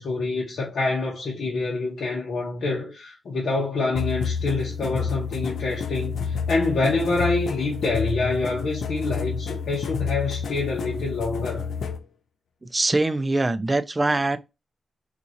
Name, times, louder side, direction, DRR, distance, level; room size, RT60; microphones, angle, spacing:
voice 1, 0.0-11.6, left 3 dB, 65° left, 1.0 m, -26 dB
sound 1, 3.9-12.0, left 6 dB, 90° left, 0.4 m, -30 dB
voice 2, 12.6-14.4, right 2 dB, 20° right, 0.3 m, -23 dB
3.9 x 2.5 x 2.8 m
wide cardioid pair, 165°, 0 cm